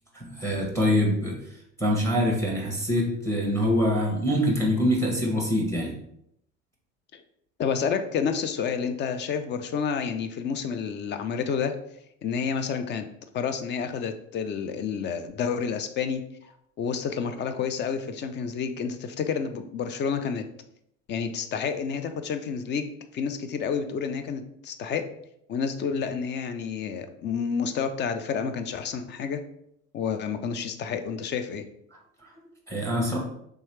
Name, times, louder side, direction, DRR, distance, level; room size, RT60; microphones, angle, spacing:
voice 1, 0.1-1.4 1.8-5.9 32.2-32.3 32.7-33.2, equal, 5° left, -1 dB, 1.0 m, -24 dB
voice 2, 7.6-11.7 12.2-13.1 13.3-16.2 16.8-20.4 21.1-25.0 25.5-29.4 29.9-31.6, left 6 dB, 30° left, 8 dB, 0.4 m, -29 dB
3.3 x 3.0 x 3.1 m, 0.74 s
hypercardioid pair, 80°, 39 cm